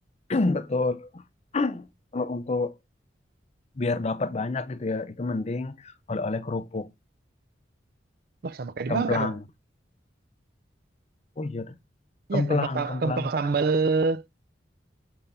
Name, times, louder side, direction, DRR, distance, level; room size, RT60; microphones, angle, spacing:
voice 1, 0.3-1.2 1.5-1.9 2.1-2.7 3.8-6.9 8.9-9.4 11.4-11.8 12.3-13.3, left 3 dB, 35° left, 0.5 m, -28 dB
voice 2, 8.4-9.4 12.3-14.3, right 4 dB, 55° right, 0.4 m, -26 dB
6.8 x 3.6 x 5.5 m
head